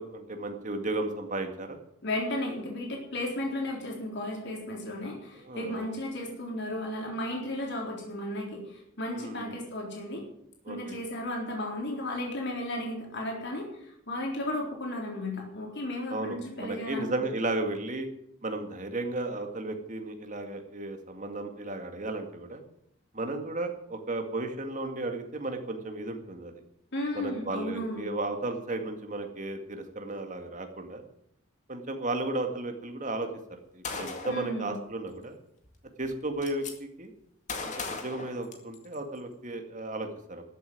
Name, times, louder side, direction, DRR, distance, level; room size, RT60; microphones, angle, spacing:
voice 1, 0.0-1.8 5.4-5.9 9.1-9.6 10.7-11.0 16.1-18.1 18.4-22.6 23.1-26.5 27.1-31.1 31.7-33.3 33.7-35.4 36.0-36.6 37.0-37.1 37.6-40.4, right 2 dB, 35° right, 5 dB, 2.1 m, -34 dB
voice 2, 2.0-10.2 10.7-17.3 26.9-28.1 34.3-34.7, left 1 dB, 55° left, -1 dB, 4.0 m, -34 dB
Gunshot gunfire, 33.8-34.5 35.6-35.7 36.0-36.7 37.5-39.0, left 4 dB, 35° left, 2.1 m, -37 dB
13.5 x 8.2 x 9.4 m, 0.74 s
head